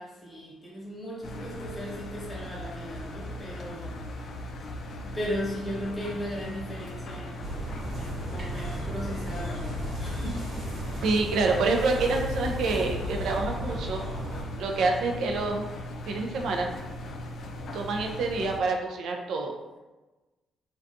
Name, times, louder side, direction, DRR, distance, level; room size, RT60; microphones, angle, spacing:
voice 1, 0.0-4.0 4.6-7.5 8.0-10.5, equal, 15° left, -5 dB, 0.9 m, -37 dB
Engine, 1.2-18.6, left 1 dB, 60° left, 0.3 m, -39 dB
sound 1, 7.4-14.4, equal, 55° right, 1.2 m, -35 dB
voice 2, 11.0-14.0 14.6-15.6 16.1-16.7 17.7-19.5, right 3 dB, 75° right, 2 dB, 0.3 m, -27 dB
2.4 x 2.2 x 2.5 m, 1.1 s
cardioid pair, 90°, 0 cm